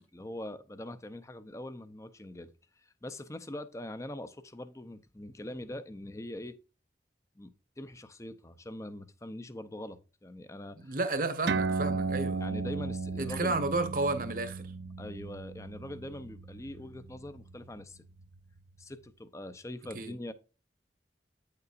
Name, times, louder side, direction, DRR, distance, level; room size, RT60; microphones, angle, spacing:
voice 1, 0.0-2.5 2.8-6.6 7.4-7.5 7.8-11.0 12.4-13.6 15.0-18.0 18.8-20.3, left 1 dB, 15° left, 0.6 m, -43 dB
voice 2, 10.8-12.4 13.2-14.7 19.9-20.1, right 2 dB, 50° right, 1.1 m, -32 dB
sound 1, 11.5-18.4, right 4 dB, 70° right, 0.6 m, -35 dB
9.2 x 6.7 x 2.5 m
head